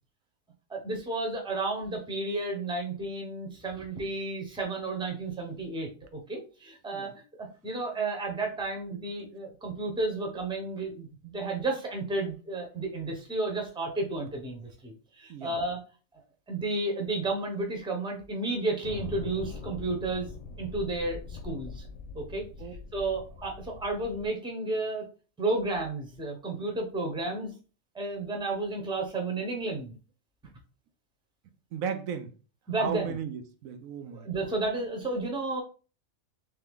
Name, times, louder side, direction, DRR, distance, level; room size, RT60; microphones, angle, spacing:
voice 1, 0.7-7.1 7.4-15.8 16.5-20.3 20.6-21.8 22.1-22.5 22.9-25.1 25.4-27.5 27.9-29.9 32.7-33.2 34.1-35.6, right 2 dB, 5° right, 0.8 m, -32 dB
sound 1, 18.8-24.3, left 4 dB, 85° left, 1.1 m, -42 dB
voice 2, 31.7-32.3 32.8-34.3, right 7 dB, 80° right, 1.1 m, -35 dB
3.4 x 3.3 x 3.6 m
omnidirectional pair, 1.4 m